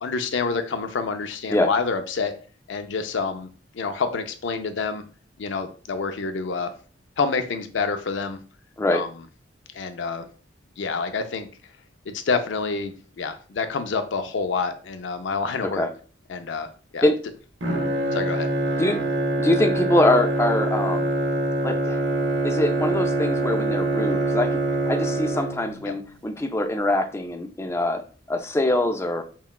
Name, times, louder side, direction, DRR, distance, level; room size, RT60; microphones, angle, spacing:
voice 1, 0.0-2.3 2.7-3.5 3.7-5.0 5.4-6.7 7.2-8.4 8.9-9.1 9.7-10.3 10.8-11.5 12.1-15.8 16.3-17.1 18.1-18.5 25.9-26.0, left 4 dB, 75° left, 8 dB, 0.5 m, -27 dB
Bowed string instrument, 17.6-25.9, right 2 dB, 70° right, 0.7 m, -24 dB
voice 2, 19.4-21.1 21.6-22.0 22.4-24.6 24.9-28.0 28.3-29.2, left 1 dB, 15° left, 7 dB, 0.3 m, -23 dB
5.5 x 2.3 x 2.3 m, 0.39 s
head